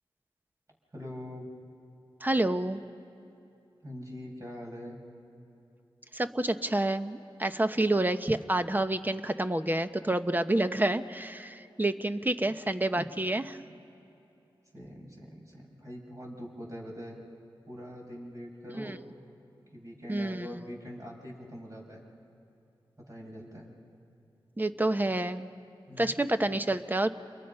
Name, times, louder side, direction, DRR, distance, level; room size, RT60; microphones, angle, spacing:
voice 1, 0.9-1.5 3.8-5.0 12.5-12.6 13.0-13.1 14.7-17.2 17.7-19.0 19.7-22.0 23.0-23.7 25.9-26.2, equal, 35° right, -2 dB, 6.9 m, -43 dB
voice 2, 2.2-2.8 6.1-13.5 18.7-19.0 20.1-20.6 24.6-25.5 26.0-27.1, right 1 dB, 20° right, 9 dB, 1.1 m, -28 dB
28.5 x 22.0 x 5.6 m, 2.8 s
cardioid pair, 40°, 9 cm